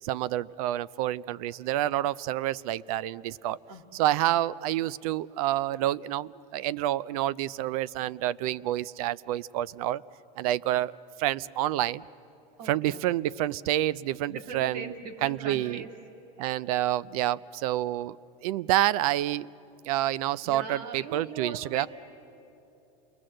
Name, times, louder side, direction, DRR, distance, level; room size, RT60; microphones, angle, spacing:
voice 1, 0.0-3.6 3.9-10.0 10.4-12.0 12.6-14.9 15.2-15.9 16.4-18.2 18.4-19.5 19.8-21.9, right 14 dB, 65° right, 22 dB, 0.5 m, -28 dB
voice 2, 12.6-13.2 14.3-15.9 16.4-16.9 20.4-21.9, right 4 dB, 80° right, 5 dB, 2.6 m, -41 dB
28.0 x 21.0 x 7.7 m, 2.9 s
supercardioid pair, 170°, 20 cm